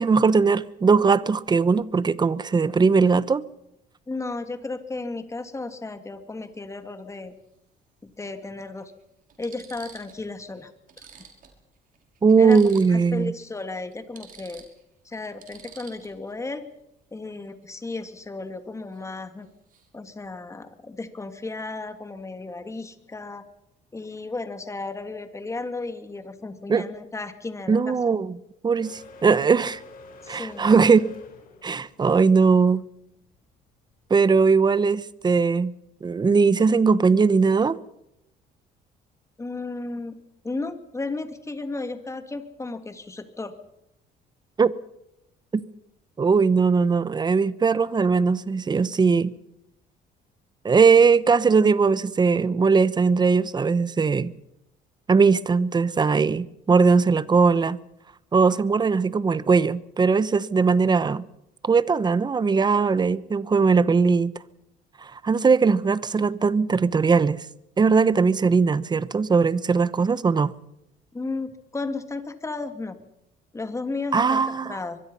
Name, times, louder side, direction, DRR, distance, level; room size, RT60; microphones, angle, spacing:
voice 1, 0.0-3.4 12.2-13.3 26.7-26.8 27.7-28.4 28.6-29.8 30.3-31.1 31.6-32.8 34.1-35.7 36.0-37.8 44.6-44.7 46.2-49.3 50.6-54.3 55.1-57.8 58.3-61.2 61.6-64.3 65.1-67.4 67.8-70.5 74.1-74.8, right 5 dB, 25° right, 1.0 m, -20 dB
voice 2, 4.1-7.3 8.0-8.9 9.4-10.7 11.0-11.1 12.4-14.6 15.0-16.6 17.1-19.5 19.9-23.4 23.9-27.9 30.2-30.7 39.4-40.2 40.4-43.5 71.1-73.0 73.5-75.0, left 3 dB, 15° left, 2.6 m, -34 dB
sound 1, 6.4-6.6 8.0-8.1 8.8-8.9 9.3-10.2 10.6-10.7 10.9-13.2 13.5-13.6 13.9-16.3 18.9-19.1 19.4-19.9, right 7 dB, 55° right, 5.7 m, -49 dB
sound 2, 28.8-35.4, left 3 dB, 55° left, 7.2 m, -48 dB
24.5 x 22.0 x 5.6 m
cardioid pair, 110°, 17 cm